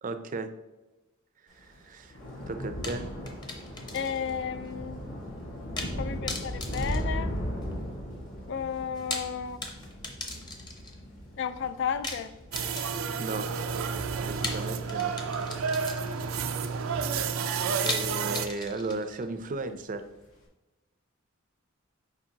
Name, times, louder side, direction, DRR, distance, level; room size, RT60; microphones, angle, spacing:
voice 1, 0.0-0.5 1.6-2.2 2.5-3.1 13.2-13.7 14.2-15.1 17.8-20.0, right 3 dB, 40° right, 9 dB, 0.5 m, -35 dB
Thunder / Rain, 1.6-18.2 18.5-19.0 19.2-19.4, equal, 80° left, 1.7 m, -38 dB
sound 1, 2.8-4.4 4.6-4.7 5.8-6.0 6.3-7.8 8.9-11.0 12.0-13.2 14.4-16.3 17.9-19.2, left 2 dB, 20° left, 0.8 m, -38 dB
voice 2, 3.9-5.0 6.0-7.3 8.5-9.6 11.4-12.3, left 7 dB, 60° left, 13 dB, 0.4 m, -33 dB
sound 2, 12.5-18.5, right 6 dB, 90° right, 0.5 m, -30 dB
7.2 x 5.1 x 2.8 m, 1.1 s
head